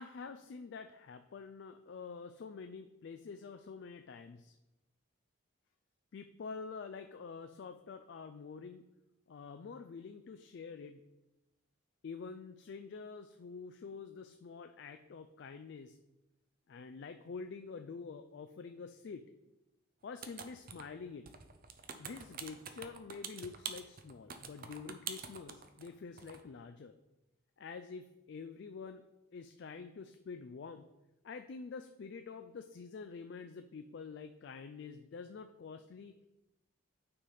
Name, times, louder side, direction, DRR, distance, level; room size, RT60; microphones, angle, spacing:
voice 1, 0.0-4.6 6.1-8.8 9.3-11.0 12.0-16.0 16.7-19.3 20.0-21.3 22.0-27.0 27.6-29.0 29.3-30.9 31.2-36.1, left 5 dB, 55° left, 8 dB, 0.3 m, -47 dB
sound 1, 20.2-21.0 21.3-25.9 26.2-26.4, right 7 dB, 45° right, 0.6 m, -45 dB
9.1 x 3.4 x 5.5 m, 0.95 s
head